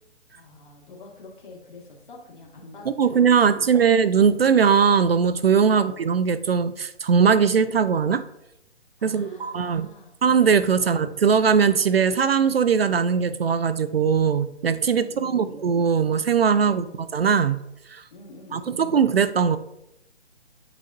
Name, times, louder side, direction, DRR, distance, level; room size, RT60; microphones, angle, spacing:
voice 1, 0.3-3.3 3.8-3.9 5.7-6.0 9.0-10.1 10.8-11.0 14.9-15.6 16.6-17.0 18.1-19.1, left 3 dB, 45° left, -1 dB, 2.0 m, -45 dB
voice 2, 3.0-8.2 9.0-9.9 10.2-16.9 17.1-17.6 17.9-18.0 18.5-19.6, right 6 dB, 60° right, 14 dB, 0.4 m, -20 dB
8.8 x 6.0 x 2.6 m, 0.82 s
figure-of-eight pair, 140°, 35 cm